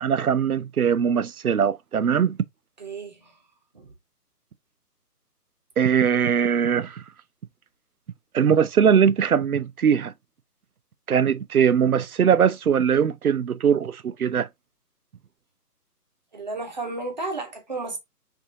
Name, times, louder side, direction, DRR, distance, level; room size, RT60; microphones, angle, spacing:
voice 1, 0.0-2.4 5.8-7.0 8.3-10.1 11.1-14.5, right 7 dB, 65° right, 0.6 m, -21 dB
voice 2, 2.8-3.4 3.7-3.9 16.3-18.0, right 3 dB, 25° right, 0.9 m, -33 dB
5.6 x 2.7 x 2.7 m
figure-of-eight pair, 145°, 49 cm